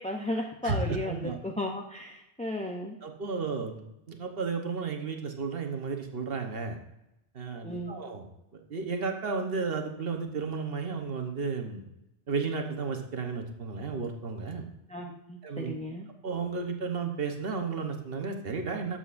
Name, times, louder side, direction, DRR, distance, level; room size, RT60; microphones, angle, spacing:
voice 1, 0.0-3.0 7.6-7.9 14.9-16.1, left 1 dB, 10° left, 1 dB, 0.4 m, -35 dB
voice 2, 1.1-1.4 3.0-6.8 7.3-8.3 8.5-11.8 12.3-14.7 15.4-15.8 16.2-19.0, right 5 dB, 60° right, 4 dB, 1.3 m, -33 dB
12.5 x 7.8 x 2.5 m, 0.88 s
omnidirectional pair, 1.1 m